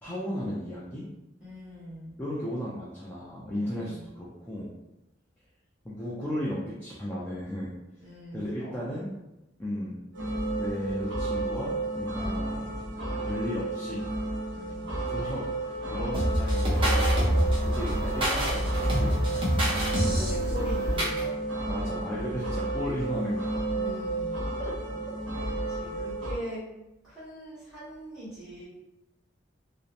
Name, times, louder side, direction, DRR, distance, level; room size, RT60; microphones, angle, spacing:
voice 1, 0.0-1.1 2.2-4.7 5.8-7.7 8.3-9.1 9.6-10.0 10.3-12.7 13.2-14.0 15.1-19.3 21.7-23.6 24.6-24.8 25.0-25.2, equal, 10° left, -7 dB, 0.4 m, -35 dB
voice 2, 1.4-2.1 3.5-4.1 8.0-8.9 14.5-15.0 19.7-21.4 23.7-24.5 25.7-26.6 27.0-28.7, right 1 dB, 5° right, -12 dB, 1.2 m, -42 dB
sound 1, 10.1-26.4, right 2 dB, 70° right, 0.7 m, -32 dB
sound 2, 16.1-21.2, equal, 30° right, 0.7 m, -26 dB
2.7 x 2.0 x 2.5 m, 0.95 s
head